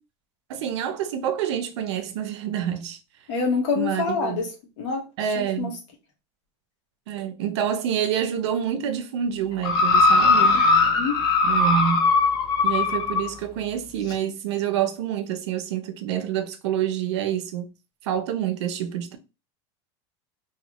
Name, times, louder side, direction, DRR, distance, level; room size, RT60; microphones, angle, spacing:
voice 1, 0.5-3.0 3.7-4.4 5.2-5.7 7.1-10.6 11.4-12.1 12.6-17.7 18.0-19.2, right 9 dB, 75° right, 0.7 m, -27 dB
voice 2, 3.3-4.5 4.8-5.7 10.9-11.2, left 5 dB, 80° left, 1.3 m, -26 dB
sound 1, 9.6-13.3 14.1-14.2, left 3 dB, 25° left, 0.4 m, -19 dB
3.2 x 2.3 x 2.9 m
supercardioid pair, 175°, 15 cm